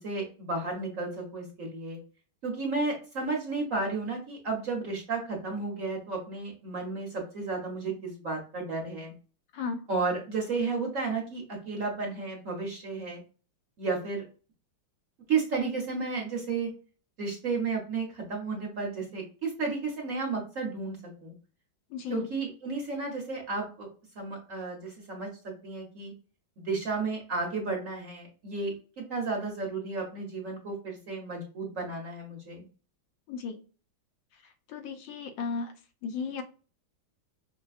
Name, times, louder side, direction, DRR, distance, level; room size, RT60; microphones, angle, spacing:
voice 1, 0.0-2.0 2.4-9.1 9.9-13.2 13.8-14.2 15.3-16.7 17.2-21.3 22.1-23.9 24.1-26.1 26.6-32.6, right 4 dB, 55° right, -1 dB, 1.0 m, -33 dB
voice 2, 21.9-22.3 33.3-33.6 34.7-35.7 36.0-36.4, left 5 dB, 75° left, 6 dB, 1.3 m, -34 dB
5.3 x 2.2 x 2.3 m, 0.37 s
omnidirectional pair, 2.2 m